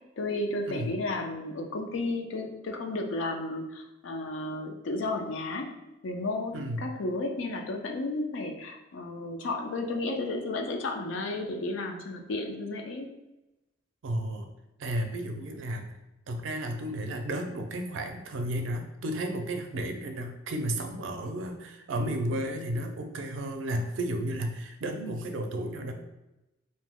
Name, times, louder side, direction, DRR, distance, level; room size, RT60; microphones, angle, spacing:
voice 1, 0.2-5.7 6.0-13.1, left 2 dB, 80° left, 3 dB, 0.4 m, -33 dB
voice 2, 6.5-6.9 14.0-14.5 14.8-15.9 16.3-25.9, right 1 dB, 80° right, 5 dB, 0.4 m, -33 dB
2.7 x 2.0 x 3.5 m, 0.97 s
head